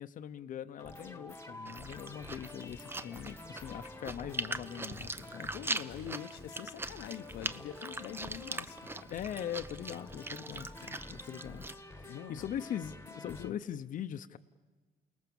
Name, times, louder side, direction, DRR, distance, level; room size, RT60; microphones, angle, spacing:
voice 1, 0.0-5.5 9.1-14.4, left 10 dB, 50° left, 9 dB, 0.8 m, -41 dB
sound 1, 0.8-13.5, left 2 dB, 15° left, 1.4 m, -49 dB
Chewing mastication, 1.7-11.7, right 2 dB, 15° right, 0.7 m, -42 dB
voice 2, 5.5-9.1 12.1-12.4 13.4-13.6, left 11 dB, 80° left, 9 dB, 0.9 m, -45 dB
29.0 x 19.0 x 7.1 m, 1.3 s
cardioid pair, 110°, 17 cm